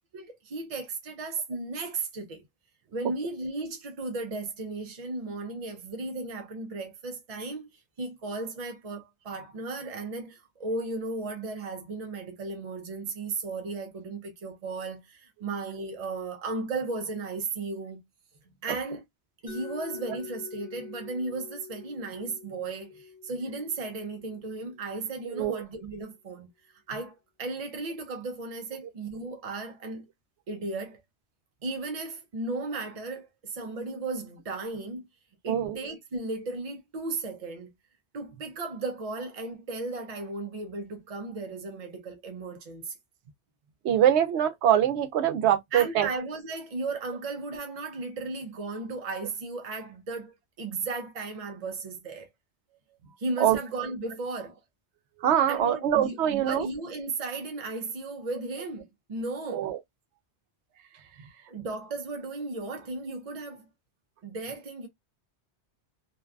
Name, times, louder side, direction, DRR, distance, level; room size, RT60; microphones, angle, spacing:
voice 1, 0.1-2.4 2.9-18.0 18.6-19.0 19.4-26.5 26.9-30.1 30.5-31.0 31.6-35.1 35.4-37.7 38.1-42.9 45.7-52.3 53.2-54.6 55.5-59.7 61.5-63.7 64.2-64.9, right 3 dB, 50° right, 0.4 m, -35 dB
Mallet percussion, 19.5-25.3, left 6 dB, 10° left, 1.0 m, -46 dB
voice 2, 25.2-25.6 35.5-35.8 43.8-46.1 53.4-53.6 55.2-56.7 59.5-59.8, right 10 dB, 80° right, 0.8 m, -24 dB
2.5 x 2.3 x 2.2 m
omnidirectional pair, 1.1 m